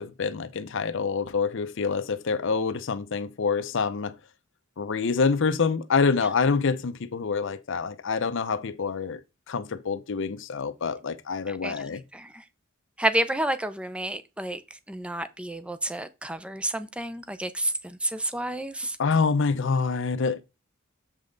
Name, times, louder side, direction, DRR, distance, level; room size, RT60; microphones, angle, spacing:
voice 1, 0.0-4.1 4.8-9.2 9.5-12.0 19.0-20.4, left 5 dB, 65° left, 0.6 m, -26 dB
voice 2, 11.5-12.3 13.0-14.6 14.9-19.0, right 1 dB, 5° right, 0.6 m, -30 dB
7.2 x 5.3 x 3.9 m
head